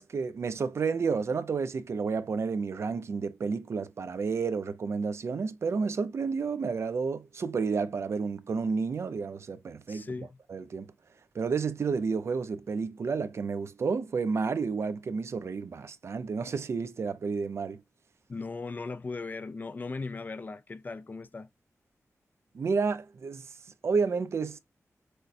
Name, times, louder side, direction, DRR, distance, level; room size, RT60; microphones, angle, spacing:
voice 1, 0.0-10.1 10.5-10.9 11.3-17.8 22.5-23.5 23.8-24.6, right 5 dB, 55° right, 0.4 m, -31 dB
voice 2, 9.9-10.4 18.3-21.5, left 3 dB, 35° left, 0.3 m, -38 dB
6.3 x 2.1 x 2.7 m
wide cardioid pair, 160°, 5 cm